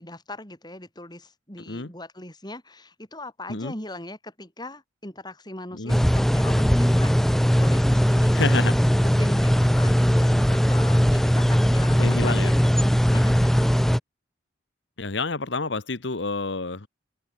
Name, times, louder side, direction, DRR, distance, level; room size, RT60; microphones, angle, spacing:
voice 1, 0.0-13.8, left 1 dB, 20° left, 5.1 m, -40 dB
sound 1, 5.9-14.0, equal, ahead, 0.5 m, -19 dB
voice 2, 8.3-8.7 12.0-12.6 15.0-16.9, left 3 dB, 65° left, 1.3 m, -28 dB
open air
head